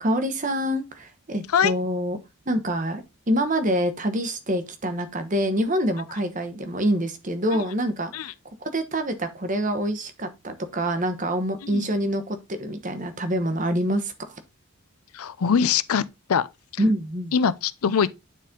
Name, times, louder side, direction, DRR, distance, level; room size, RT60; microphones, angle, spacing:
voice 1, 0.0-2.2 2.5-8.3 8.6-14.4 16.8-17.3, equal, 35° right, 1.0 m, -26 dB
voice 2, 15.1-16.5 16.7-16.8 17.3-18.1, left 7 dB, 80° left, 0.5 m, -23 dB
9.2 x 4.2 x 3.7 m
head